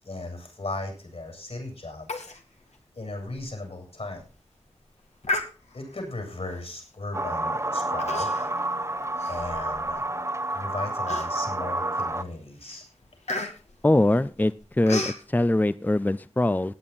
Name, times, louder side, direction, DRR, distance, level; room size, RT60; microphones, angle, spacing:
voice 1, 0.0-2.1 2.9-4.3 5.7-8.3 9.3-10.1 10.5-12.8, left 2 dB, 65° left, 3 dB, 7.5 m, -36 dB
Human voice, 2.1-2.4 2.7-2.8 3.3-3.5 4.0-4.3 5.2-6.0 6.7-7.0 8.0-8.6 9.0-10.0 10.5-10.6 11.1-11.6 12.1-12.3 12.6-15.2, left 2 dB, 80° left, 2.3 m, -33 dB
sound 1, 7.1-12.2, right 2 dB, 25° right, 0.9 m, -29 dB
voice 2, 13.8-16.7, left 1 dB, 15° left, 15 dB, 0.5 m, -23 dB
17.5 x 9.1 x 4.2 m, 0.33 s
wide cardioid pair, 55°, 11 cm